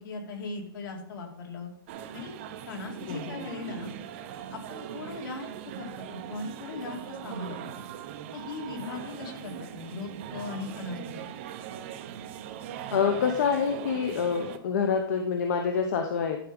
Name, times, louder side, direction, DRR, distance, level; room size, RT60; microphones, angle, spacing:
voice 1, 0.0-1.7 2.1-2.4 2.7-3.9 4.5-5.5 5.8-7.6 8.3-11.2, left 3 dB, 60° left, 1 dB, 2.6 m, -39 dB
sound 1, 1.9-14.6, right 10 dB, 30° right, 0.6 m, -40 dB
voice 2, 3.1-3.4 12.9-16.4, left 6 dB, 45° left, 4 dB, 0.9 m, -27 dB
11.5 x 4.8 x 5.3 m, 0.67 s
hypercardioid pair, 175°, 13 cm